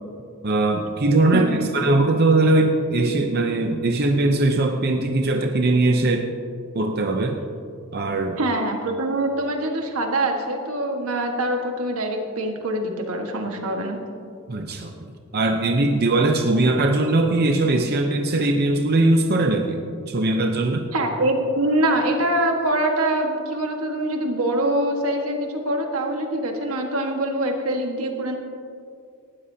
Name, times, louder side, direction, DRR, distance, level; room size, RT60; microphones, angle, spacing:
voice 1, 0.4-1.5 1.7-6.3 6.7-7.4 7.9-8.4 14.5-15.0 15.3-20.9, right 2 dB, 45° right, 4 dB, 0.7 m, -20 dB
voice 2, 1.3-1.7 8.4-14.0 20.9-28.4, right 1 dB, 85° right, 3 dB, 1.6 m, -24 dB
18.5 x 12.5 x 2.8 m, 2.5 s
head